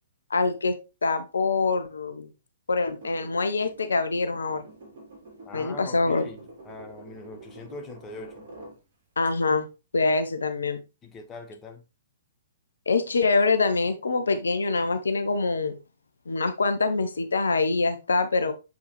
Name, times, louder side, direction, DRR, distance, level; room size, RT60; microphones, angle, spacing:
voice 1, 0.3-0.7 1.0-2.3 2.7-4.6 5.5-6.3 9.2-9.7 9.9-10.8 12.9-15.8 16.3-18.5, left 3 dB, 70° left, 0.8 m, -24 dB
sound 1, 2.8-8.8 9.2-9.3, right 2 dB, 50° right, 3.0 m, -47 dB
voice 2, 5.4-8.5 11.0-11.8, left 3 dB, 20° left, 1.1 m, -42 dB
7.1 x 4.8 x 3.1 m
figure-of-eight pair, 115°, 0 cm